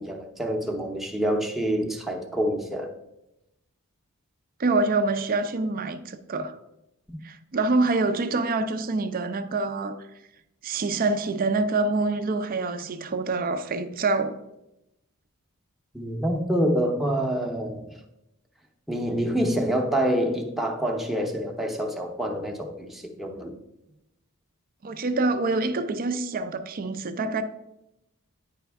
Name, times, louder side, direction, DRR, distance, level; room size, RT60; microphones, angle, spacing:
voice 1, 0.0-2.9 15.9-18.0 18.9-23.5, equal, ahead, 0.7 m, -27 dB
voice 2, 4.6-6.6 7.2-10.0 10.6-14.4 24.8-27.4, right 3 dB, 40° right, 0.4 m, -26 dB
9.5 x 5.0 x 3.4 m
head